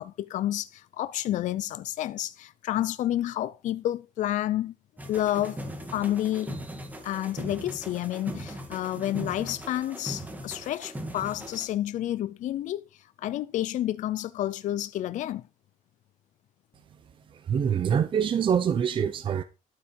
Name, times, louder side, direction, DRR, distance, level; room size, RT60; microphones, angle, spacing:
voice 1, 0.0-4.7 5.1-5.6 5.9-6.6 7.0-15.5, left 13 dB, 60° left, 0.5 m, -30 dB
sound 1, 5.0-11.7, right 1 dB, 10° right, 2.1 m, -39 dB
voice 2, 17.5-19.4, right 8 dB, 35° right, 0.7 m, -25 dB
12.0 x 8.5 x 4.6 m
cardioid pair, 170°, 15 cm